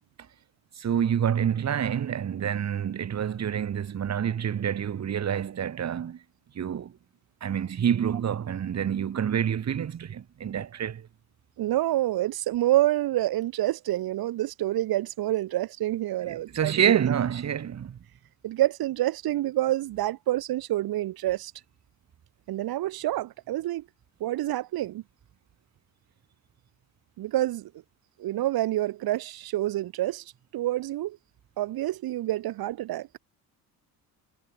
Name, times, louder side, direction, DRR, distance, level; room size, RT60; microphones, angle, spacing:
voice 1, 0.8-6.2 6.6-6.9 7.4-11.1 16.3-18.0, right 8 dB, 45° right, 4.4 m, -27 dB
voice 2, 11.6-16.9 18.4-21.5 22.5-23.8 24.2-25.0 27.2-27.7 28.2-30.2 30.5-31.2 31.6-33.1, right 15 dB, 70° right, 4.8 m, -27 dB
cardioid pair, 110°, 37 cm